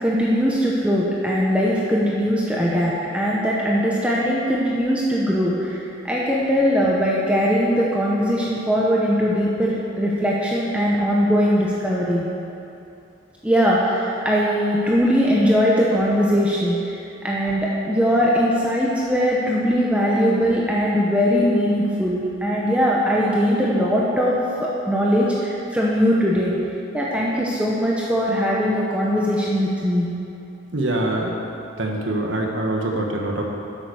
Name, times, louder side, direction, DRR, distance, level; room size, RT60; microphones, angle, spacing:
voice 1, 0.0-12.3 13.4-24.3 24.6-26.5 26.9-30.1, equal, 5° right, -5 dB, 1.0 m, -20 dB
voice 2, 30.7-31.3 31.8-33.4, right 1 dB, 65° right, 0 dB, 1.7 m, -24 dB
11.0 x 8.1 x 6.5 m, 2.7 s
head